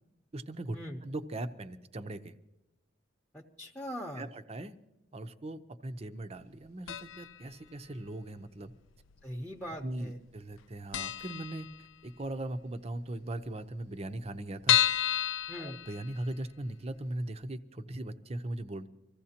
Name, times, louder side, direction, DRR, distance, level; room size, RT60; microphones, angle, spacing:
voice 1, 0.3-2.3 4.2-4.7 5.1-8.7 9.8-14.8 15.6-18.9, right 1 dB, 35° right, 9 dB, 0.6 m, -39 dB
voice 2, 3.3-4.3 9.2-10.2 15.5-15.8, equal, 5° left, 1 dB, 0.8 m, -41 dB
sound 1, 6.9-7.4 7.7-7.8 8.7-9.4 9.7-9.8 10.1-10.2 10.6-10.7 10.9-12.2 12.6-12.7 13.0-13.1 13.3-13.4 13.9-16.5 17.0-17.1 17.4-17.5, left 11 dB, 90° left, 0.4 m, -31 dB
25.0 x 15.0 x 2.9 m, 0.93 s
head